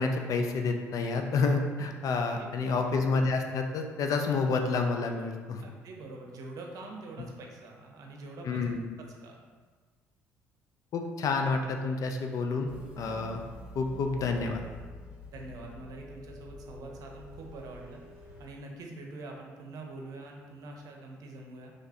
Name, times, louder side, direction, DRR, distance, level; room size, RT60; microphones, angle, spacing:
voice 1, 0.0-5.6 8.5-8.8 10.9-12.7 13.0-13.4 13.8-14.6, left 4 dB, 55° left, 4 dB, 0.5 m, -29 dB
voice 2, 2.4-2.8 5.6-8.6 9.2-9.4 15.3-21.7, right 2 dB, 60° right, 1 dB, 0.7 m, -45 dB
sound 1, 12.6-18.5, equal, 15° right, 1.4 m, -47 dB
3.8 x 3.2 x 2.7 m, 1.5 s
hypercardioid pair, 60°, 7 cm